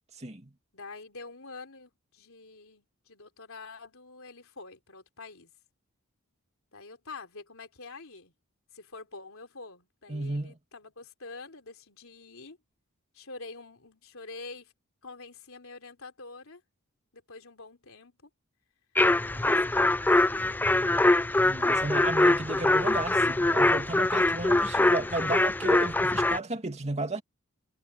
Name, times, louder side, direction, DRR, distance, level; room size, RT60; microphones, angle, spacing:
voice 1, 0.2-0.5 10.1-10.5 21.4-27.2, right 2 dB, 30° right, 2.4 m, -33 dB
voice 2, 0.7-5.5 6.7-8.3 8.7-12.6 13.1-14.7 15.0-16.6 17.1-18.3 19.3-20.8, left 3 dB, 65° left, 4.0 m, -46 dB
sound 1, 18.9-26.4, left 2 dB, 10° left, 0.3 m, -23 dB
head